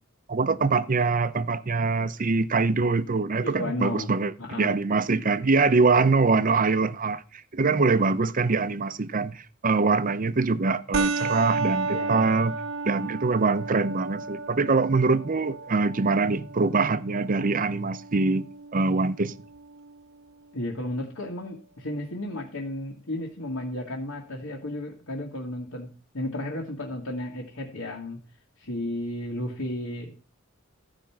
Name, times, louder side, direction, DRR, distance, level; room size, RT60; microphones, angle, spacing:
voice 1, 0.3-4.3 4.6-12.5 12.9-18.5 18.7-19.3, right 4 dB, 40° right, 0.6 m, -24 dB
voice 2, 3.3-4.1 4.4-4.8 11.9-12.3 20.5-28.2 28.6-30.1, left 1 dB, 80° left, 1.8 m, -33 dB
sound 1, 10.9-19.9, right 4 dB, 75° right, 0.9 m, -33 dB
14.0 x 5.3 x 5.8 m
head